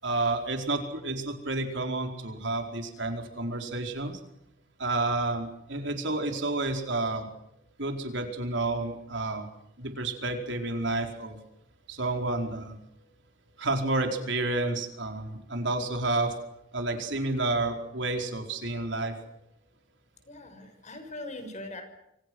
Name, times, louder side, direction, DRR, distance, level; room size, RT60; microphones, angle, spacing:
voice 1, 0.0-4.2 4.8-7.3 7.8-9.5 9.8-11.4 11.9-12.8 13.6-16.3 16.7-19.1, right 2 dB, 65° right, 4 dB, 4.7 m, -30 dB
voice 2, 20.3-21.8, left 2 dB, 40° left, 7 dB, 6.1 m, -41 dB
28.5 x 26.0 x 6.4 m, 0.80 s
head